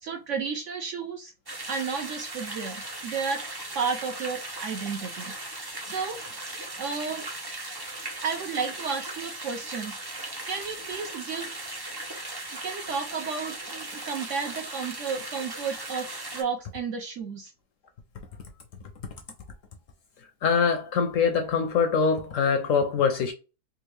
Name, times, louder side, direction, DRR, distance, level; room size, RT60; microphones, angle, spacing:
voice 1, 0.0-1.3 1.7-3.4 3.7-5.3 5.9-6.2 6.8-7.3 8.2-9.9 10.4-11.6 12.6-16.1 16.3-17.5, right 5 dB, 65° right, 0.7 m, -32 dB
sound 1, 1.5-16.4, right 2 dB, 35° right, 0.3 m, -38 dB
voice 2, 20.2-23.3, left 5 dB, 70° left, 0.8 m, -24 dB
3.6 x 2.5 x 3.1 m
omnidirectional pair, 1.7 m